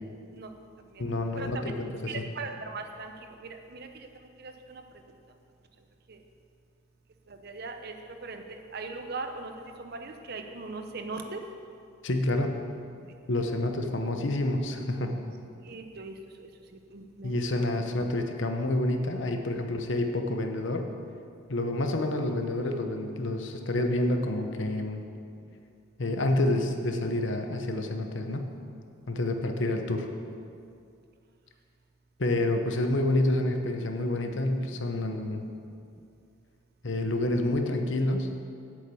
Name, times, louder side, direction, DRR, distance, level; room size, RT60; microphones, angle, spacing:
voice 1, 1.0-2.2 12.0-12.6 13.3-15.2 17.2-20.9 21.5-25.0 26.0-28.5 29.1-30.1 32.2-35.5 36.8-38.4, left 1 dB, 60° left, 5 dB, 0.9 m, -28 dB
voice 2, 2.1-3.1 3.4-3.9 4.4-4.8 6.1-6.2 7.4-7.9 8.2-9.5 9.8-11.4 15.6-16.1 16.9-17.7, right 3 dB, 50° right, 6 dB, 0.8 m, -39 dB
8.2 x 6.9 x 8.3 m, 2.4 s
head